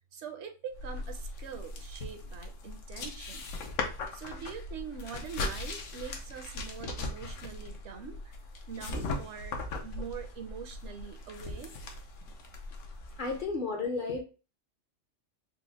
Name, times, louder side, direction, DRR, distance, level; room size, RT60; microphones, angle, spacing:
voice 1, 0.1-3.4 4.1-8.3 8.7-11.7, right 7 dB, 70° right, 6 dB, 0.9 m, -43 dB
sound 1, 0.7-13.4, left 2 dB, 75° left, 1.1 m, -39 dB
voice 2, 13.2-14.2, left 3 dB, 50° left, 2 dB, 0.7 m, -32 dB
4.1 x 2.1 x 3.8 m, 0.32 s
omnidirectional pair, 1.3 m